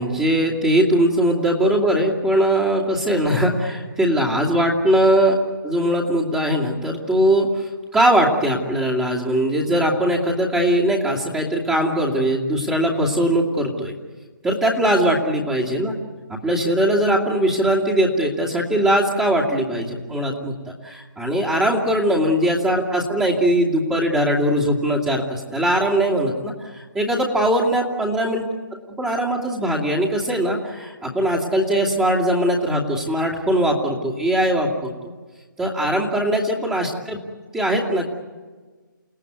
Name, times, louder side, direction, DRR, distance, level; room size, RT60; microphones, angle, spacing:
voice 1, 0.0-5.4 5.6-13.9 14.4-16.0 16.3-28.5 29.0-34.9 35.6-37.2 37.5-38.1, right 1 dB, 10° right, -3 dB, 2.6 m, -20 dB
29.5 x 17.5 x 9.5 m, 1.4 s
hypercardioid pair, 160°, 11 cm